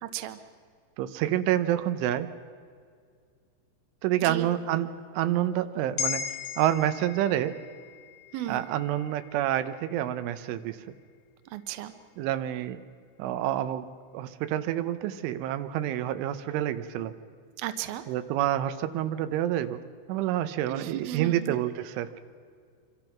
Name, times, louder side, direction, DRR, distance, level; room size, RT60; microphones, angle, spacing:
voice 1, 0.0-0.4 4.2-4.5 8.3-8.7 11.5-11.9 17.6-18.0 20.7-21.6, right 12 dB, 70° right, 9 dB, 2.5 m, -35 dB
voice 2, 1.0-2.3 4.0-6.3 6.6-7.6 8.5-10.8 12.2-12.8 13.2-13.9 14.1-17.1 18.1-19.8 20.1-22.2, right 12 dB, 85° right, 10 dB, 3.4 m, -28 dB
sound 1, 6.0-10.5 10.9-11.0, left 8 dB, 85° left, 3.8 m, -38 dB
26.0 x 25.0 x 6.0 m, 2.1 s
omnidirectional pair, 5.4 m